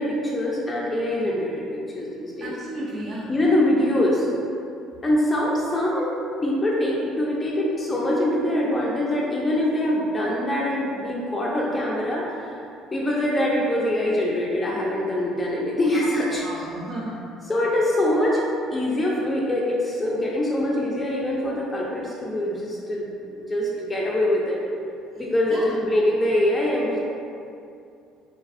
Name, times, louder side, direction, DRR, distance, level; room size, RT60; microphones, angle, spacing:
voice 1, 0.0-1.6 1.9-2.5 3.3-4.3 5.0-12.5 12.9-16.5 17.4-18.4 18.7-23.1 23.4-24.6 25.2-27.0, left 1 dB, 25° left, -4 dB, 0.4 m, -24 dB
voice 2, 2.4-3.3 16.0-17.2 25.5-25.7, right 1 dB, 55° right, -5 dB, 0.4 m, -34 dB
3.2 x 2.3 x 2.5 m, 2.5 s
hypercardioid pair, 65°, 0 cm